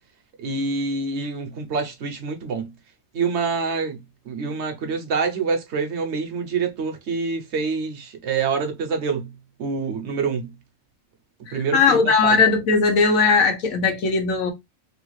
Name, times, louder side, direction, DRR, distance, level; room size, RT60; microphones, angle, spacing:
voice 1, 0.4-2.7 3.1-4.0 4.3-9.3 9.6-10.5 11.5-12.4, right 4 dB, 60° right, 0.8 m, -26 dB
voice 2, 11.5-14.5, left 4 dB, 85° left, 1.2 m, -19 dB
3.0 x 2.3 x 3.1 m
omnidirectional pair, 1.4 m